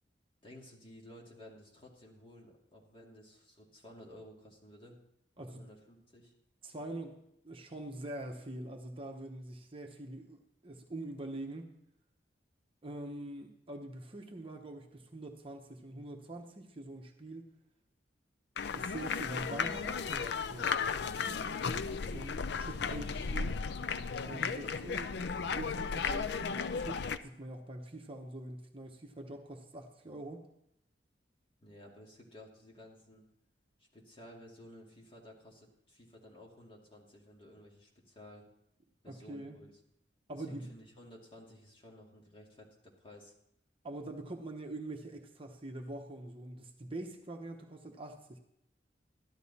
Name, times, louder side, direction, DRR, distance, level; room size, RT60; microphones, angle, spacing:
voice 1, 0.4-5.0 5.4-6.3 31.6-33.2 33.8-38.5 39.0-39.7 40.3-43.3, left 1 dB, 30° left, -2 dB, 2.5 m, -55 dB
voice 2, 6.6-7.2 7.4-11.7 12.8-17.5 18.7-20.7 22.0-23.6 24.2-30.4 39.0-39.6 40.3-40.7 43.8-48.4, right 1 dB, 30° right, 3 dB, 1.0 m, -44 dB
sound 1, 18.6-27.2, left 5 dB, 65° left, 0.5 m, -35 dB
13.5 x 11.5 x 4.2 m, 0.78 s
head